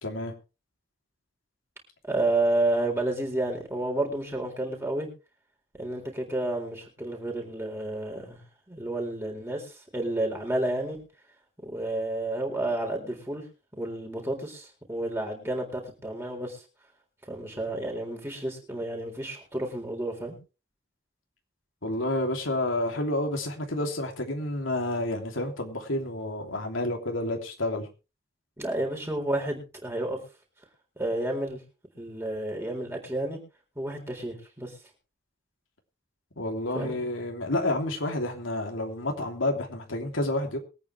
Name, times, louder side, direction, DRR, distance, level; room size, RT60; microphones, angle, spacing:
voice 1, 0.0-0.3 21.8-27.9 36.4-40.6, left 1 dB, 85° left, 2.9 m, -29 dB
voice 2, 2.0-5.1 5.8-8.4 8.7-11.0 11.6-13.4 13.8-16.6 17.3-20.4 28.6-30.2 31.0-31.6 32.0-33.4 33.8-34.7 36.7-37.0, right 2 dB, 10° right, 4.0 m, -30 dB
23.0 x 9.0 x 3.2 m
head